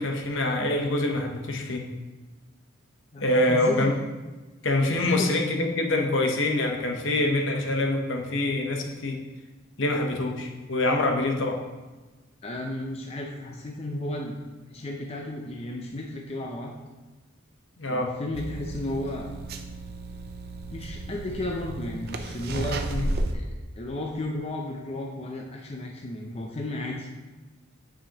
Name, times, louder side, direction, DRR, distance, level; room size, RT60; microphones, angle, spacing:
voice 1, 0.0-1.8 3.2-3.9 4.6-9.2 9.8-11.6 17.8-18.1 22.9-23.0, left 2 dB, 60° left, 2 dB, 0.9 m, -25 dB
voice 2, 3.1-4.0 5.0-5.3 12.4-14.4 14.7-16.7 17.9-19.3 20.7-22.8 23.3-23.4 23.7-27.1, left 1 dB, 30° left, 0 dB, 0.5 m, -33 dB
sound 1, 18.3-23.3, right 2 dB, 50° right, 0.5 m, -33 dB
8.6 x 4.9 x 2.9 m, 1.2 s
head